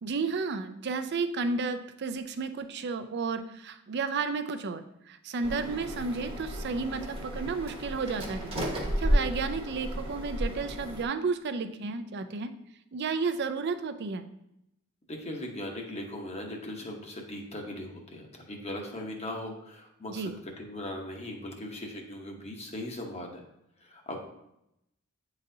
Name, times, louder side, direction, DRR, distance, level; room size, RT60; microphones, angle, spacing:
voice 1, 0.0-8.5 9.0-12.5 12.9-14.2 20.1-20.3, right 4 dB, 55° right, 9 dB, 0.5 m, -32 dB
sound 1, 5.4-11.0, equal, 25° right, 1.0 m, -32 dB
voice 2, 15.1-20.3 20.6-23.4 23.8-24.2, left 1 dB, 30° left, 1 dB, 0.9 m, -39 dB
8.7 x 4.0 x 2.7 m, 0.82 s
head